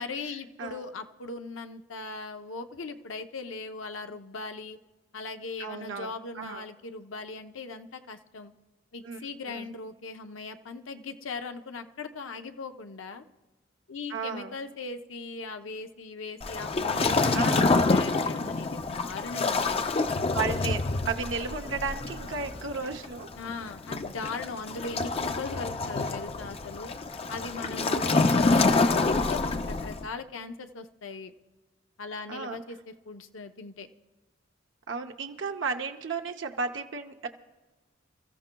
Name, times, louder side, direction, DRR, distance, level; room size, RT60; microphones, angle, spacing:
voice 1, 0.0-4.8 5.1-8.5 8.9-13.2 13.9-19.8 23.4-27.0 27.3-31.3 32.0-33.9, left 4 dB, 85° left, 7 dB, 0.7 m, -39 dB
voice 2, 5.6-6.7 9.0-9.2 9.5-9.7 14.1-14.5 17.3-17.8 19.7-19.9 20.3-23.3 27.9-28.2 32.3-32.6 34.9-37.3, right 4 dB, 70° right, 5 dB, 0.7 m, -34 dB
Waves surf, 16.4-30.1, left 3 dB, 30° left, 0.5 m, -27 dB
sound 1, 19.3-20.3 21.7-23.0, right 1 dB, 45° left, 1.2 m, -50 dB
29.0 x 14.5 x 2.2 m, 1.2 s
head